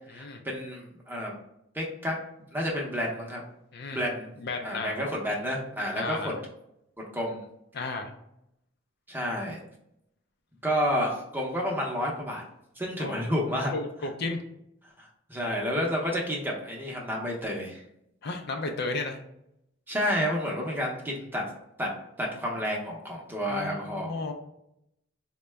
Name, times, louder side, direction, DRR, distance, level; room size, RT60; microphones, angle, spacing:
voice 1, 0.1-1.3 1.7-2.2 2.5-3.4 3.9-4.3 4.6-6.3 7.1-7.4 9.1-9.6 10.6-12.4 12.8-13.7 15.0-17.8 19.9-21.4 21.8-21.9 22.2-24.2, equal, 10° right, -2 dB, 0.7 m, -30 dB
voice 2, 3.7-4.0 4.4-5.0 5.9-6.4 7.7-8.1 13.0-13.1 13.7-14.4 18.2-19.2 23.5-24.3, left 3 dB, 55° left, 4 dB, 0.5 m, -33 dB
3.9 x 2.1 x 3.3 m, 0.78 s
head